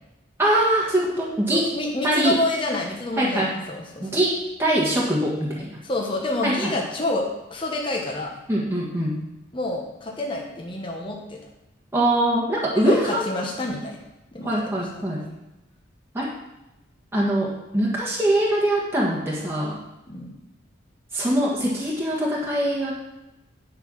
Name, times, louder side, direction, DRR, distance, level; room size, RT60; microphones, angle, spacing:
voice 1, 0.4-1.7 2.0-2.4 3.2-3.5 4.0-5.8 6.4-6.7 8.5-9.2 11.9-13.3 14.4-15.2 16.1-16.3 17.1-19.8 21.1-22.9, right 1 dB, 10° right, -5 dB, 1.5 m, -23 dB
voice 2, 1.5-4.2 5.8-8.4 9.5-11.4 12.7-14.0 14.3-14.5 20.1-20.3, left 2 dB, 25° left, -1 dB, 1.3 m, -28 dB
9.7 x 5.6 x 6.3 m, 0.96 s
head